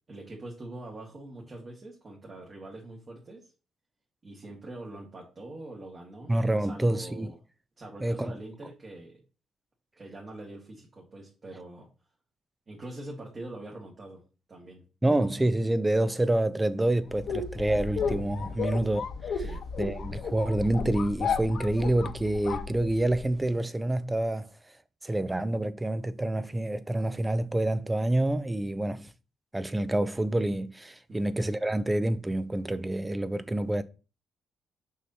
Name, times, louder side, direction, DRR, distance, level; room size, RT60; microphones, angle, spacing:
voice 1, 0.1-3.5 4.2-7.4 7.8-9.2 10.0-11.9 12.7-14.2 14.5-14.8 19.4-19.6 31.1-31.2, right 2 dB, 40° right, 1.8 m, -44 dB
voice 2, 6.3-7.3 8.0-8.4 15.0-19.4 19.8-24.5 25.0-29.1 29.5-33.8, right 1 dB, 15° right, 0.5 m, -27 dB
sound 1, 17.1-23.3, left 5 dB, 65° left, 1.0 m, -33 dB
6.3 x 5.3 x 2.8 m
cardioid pair, 90°, 0 cm